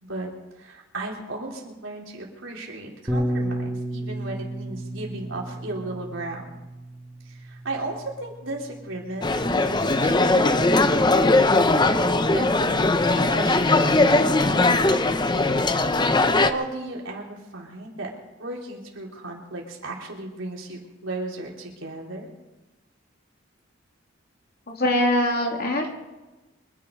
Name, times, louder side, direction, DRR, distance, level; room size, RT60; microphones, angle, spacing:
voice 1, 0.6-6.5 7.2-10.7 11.1-15.5 16.4-18.1 18.4-22.3, right 2 dB, 85° right, -1 dB, 3.7 m, -35 dB
Bass guitar, 3.1-9.3, right 1 dB, 15° right, 1.9 m, -32 dB
sound 1, 9.2-16.5, left 2 dB, 25° left, 0.7 m, -20 dB
voice 2, 24.7-25.9, left 1 dB, 50° left, 1 dB, 2.9 m, -22 dB
25.0 x 10.5 x 5.2 m, 1.1 s
head